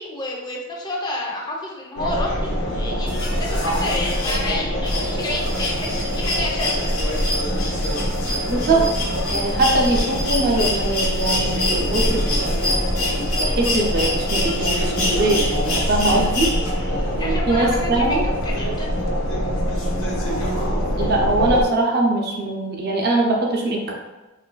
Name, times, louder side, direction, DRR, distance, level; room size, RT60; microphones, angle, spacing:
voice 1, 0.0-6.9 16.0-16.3 16.7-18.2 18.4-18.9, left 2 dB, 20° left, -2 dB, 0.5 m, -30 dB
sound 1, 2.0-21.6, equal, 65° left, 0.6 m, -24 dB
sound 2, 3.1-17.0 18.4-18.5, left 2 dB, 85° left, 0.9 m, -28 dB
voice 2, 8.5-8.8 9.3-12.9 13.4-16.5 17.2-18.2 21.0-23.8, right 2 dB, 50° right, 0 dB, 0.5 m, -22 dB
3.0 x 2.4 x 2.2 m, 1.1 s
head